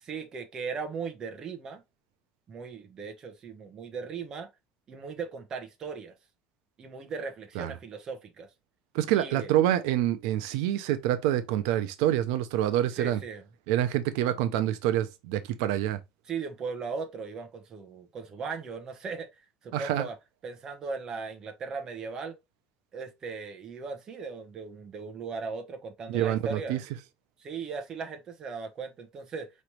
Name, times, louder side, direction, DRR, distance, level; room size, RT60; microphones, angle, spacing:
voice 1, 0.0-1.8 2.5-4.5 4.9-6.1 6.8-8.5 9.1-9.5 13.0-13.4 16.2-19.3 19.6-20.2 20.4-22.3 22.9-26.8 27.4-29.5, right 5 dB, 30° right, 1.0 m, -38 dB
voice 2, 8.9-13.2 13.7-16.0 19.7-20.1 26.1-26.8, right 12 dB, 85° right, 0.6 m, -26 dB
5.0 x 3.2 x 2.8 m
cardioid pair, 165°, 2 cm